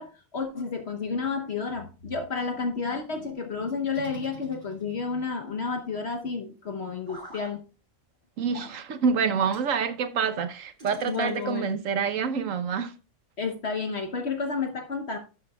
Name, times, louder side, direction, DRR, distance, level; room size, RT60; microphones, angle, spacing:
voice 1, 0.0-7.6 11.1-11.8 13.4-15.2, left 5 dB, 55° left, 1.2 m, -31 dB
sound 1, 3.9-5.1 7.1-7.5 8.5-8.8 9.5-9.7 10.8-11.6, right 2 dB, 35° right, 2.7 m, -45 dB
voice 2, 8.4-12.9, right 6 dB, 70° right, 1.2 m, -27 dB
11.5 x 7.7 x 2.3 m
omnidirectional pair, 1.4 m